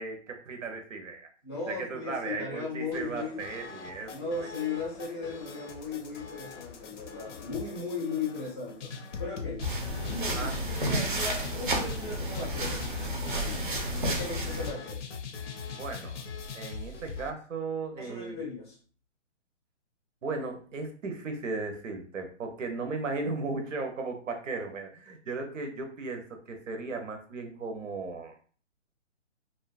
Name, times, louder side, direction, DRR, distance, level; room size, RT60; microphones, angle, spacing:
voice 1, 0.0-1.3 1.7-4.1 4.4-4.5 10.3-10.5 15.7-16.3 16.5-18.4 20.2-28.4, right 3 dB, 90° right, 4 dB, 0.7 m, -36 dB
voice 2, 1.4-3.4 4.1-8.9 9.2-10.5 10.8-12.8 13.3-13.5 14.0-15.0 18.0-18.8, left 4 dB, 25° left, -4 dB, 0.4 m, -37 dB
sound 1, 2.9-17.3, left 5 dB, 70° left, 0.5 m, -41 dB
sound 2, 9.6-14.7, right 1 dB, 45° right, 0.4 m, -31 dB
2.7 x 2.2 x 2.4 m, 0.42 s
hypercardioid pair, 170°, 37 cm